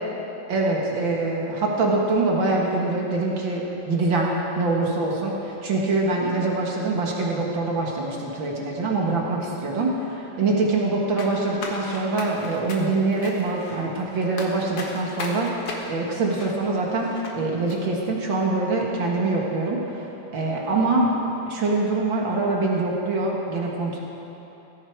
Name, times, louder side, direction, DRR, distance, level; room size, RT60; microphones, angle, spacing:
voice 1, 0.5-20.1 20.3-21.1 21.5-24.0, right 3 dB, 55° right, -2 dB, 1.3 m, -24 dB
sound 1, 11.2-17.3 17.7-17.8, left 2 dB, 55° left, 1.7 m, -37 dB
19.5 x 16.0 x 4.7 m, 3.0 s
omnidirectional pair, 4.9 m